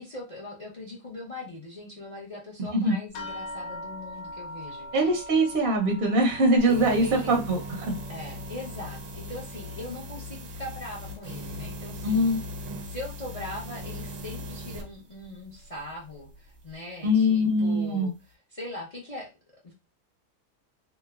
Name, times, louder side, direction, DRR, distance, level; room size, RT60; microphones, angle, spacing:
voice 1, 0.0-4.9 6.7-7.4 8.1-12.3 12.8-18.1 18.5-19.3 19.6-19.7, left 2 dB, 45° left, -2 dB, 0.4 m, -40 dB
sound 1, 3.1-12.0 12.3-13.2 13.9-14.0 14.4-14.6, equal, 85° left, 1.2 m, -43 dB
voice 2, 4.9-7.9 12.0-12.4 17.0-18.1, equal, 55° right, 1 dB, 0.6 m, -23 dB
sound 2, 6.6-14.8, left 1 dB, 90° right, 1.1 m, -39 dB
3.0 x 2.1 x 2.3 m, 0.27 s
omnidirectional pair, 1.6 m